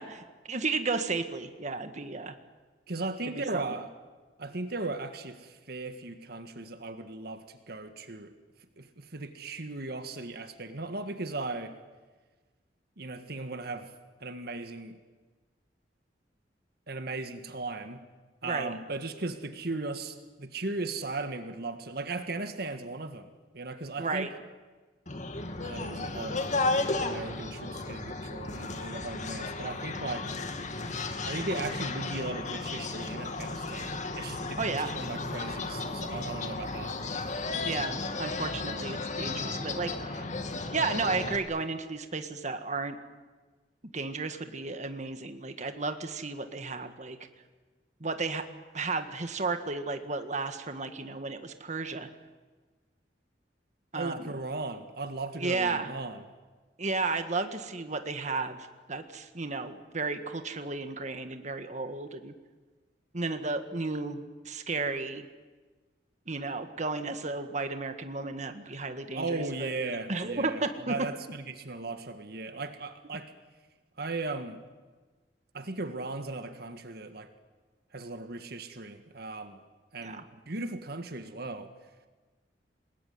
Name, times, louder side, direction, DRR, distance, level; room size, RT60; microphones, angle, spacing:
voice 1, 0.0-2.3 3.2-3.8 18.4-18.7 24.0-24.3 34.6-35.0 37.6-40.3 40.7-43.0 43.9-47.2 48.0-48.4 48.7-52.1 53.9-54.3 55.4-55.9 56.8-58.6 58.9-62.3 63.1-65.3 66.3-69.7 70.1-70.9 80.0-80.2, right 3 dB, 45° right, 8 dB, 1.7 m, -33 dB
voice 2, 2.9-3.9 4.4-8.3 8.8-11.8 13.0-13.9 14.2-15.0 16.9-18.0 18.4-23.3 23.5-24.3 25.6-26.5 27.0-30.4 31.2-37.0 53.9-56.2 69.1-73.3 74.0-74.6 75.5-77.3 77.9-79.6 79.9-81.7, right 3 dB, 60° right, 8 dB, 1.8 m, -37 dB
sound 1, 25.1-41.4, left 3 dB, 45° left, 2.3 m, -34 dB
29.0 x 20.5 x 9.6 m, 1.3 s
head